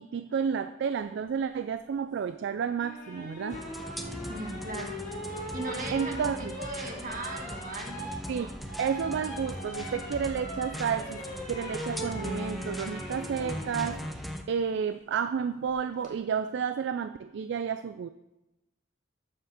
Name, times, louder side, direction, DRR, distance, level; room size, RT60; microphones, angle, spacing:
voice 1, 0.0-3.6 5.9-6.6 8.3-8.5 8.8-14.2 14.5-18.1, right 7 dB, 60° right, 10 dB, 0.3 m, -31 dB
sound 1, 2.8-14.0 15.7-16.1, equal, 40° left, 1.8 m, -41 dB
sound 2, 3.5-14.4, equal, ahead, 0.6 m, -39 dB
voice 2, 4.1-5.0 5.3-8.6, right 2 dB, 45° right, 2 dB, 1.5 m, -39 dB
7.3 x 6.0 x 6.5 m, 0.97 s
head